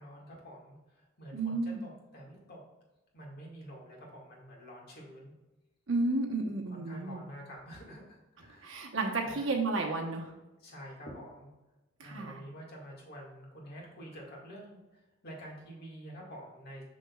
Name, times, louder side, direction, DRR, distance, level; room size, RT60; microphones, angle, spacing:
voice 1, 0.0-2.6 3.1-5.4 6.7-8.8 9.2-9.5 10.6-11.5 12.0-14.8 15.2-16.8, equal, 50° left, -2 dB, 1.9 m, -48 dB
voice 2, 1.3-1.8 5.9-7.2 8.6-10.3 12.0-12.4, right 3 dB, 70° right, 1 dB, 1.1 m, -32 dB
6.4 x 6.2 x 2.4 m, 1.0 s
head